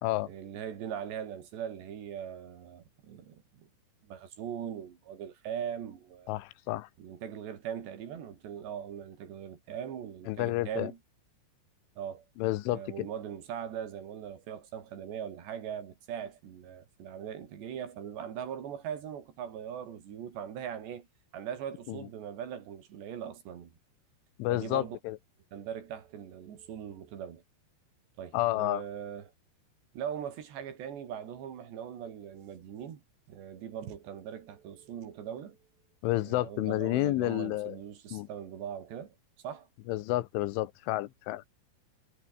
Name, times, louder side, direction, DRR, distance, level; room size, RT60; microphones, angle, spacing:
voice 1, 0.3-3.7 4.1-6.3 7.0-11.0 12.0-12.2 12.7-21.1 21.3-23.7 24.5-25.0 25.5-27.4 28.2-29.3 29.9-33.0 33.3-35.6 36.2-39.2 39.4-39.7, right 9 dB, 65° right, 5.0 m, -40 dB
voice 2, 6.3-6.9 10.3-10.9 12.4-13.1 21.9-22.0 24.4-25.2 28.3-28.8 36.0-37.8 38.1-38.3 39.9-41.5, left 17 dB, 90° left, 3.6 m, -30 dB
omnidirectional pair, 5.4 m